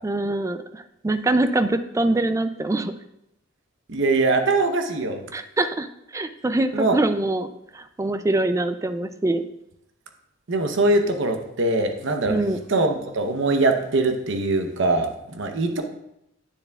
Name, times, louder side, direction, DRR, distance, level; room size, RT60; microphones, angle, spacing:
voice 1, 0.0-2.9 5.3-5.9 6.1-9.4 12.3-12.6, right 2 dB, 15° right, 11 dB, 0.3 m, -24 dB
voice 2, 3.9-5.2 6.7-7.0 10.5-12.4 12.7-15.8, right 2 dB, 65° right, 5 dB, 0.8 m, -22 dB
9.2 x 7.0 x 2.3 m, 0.82 s
head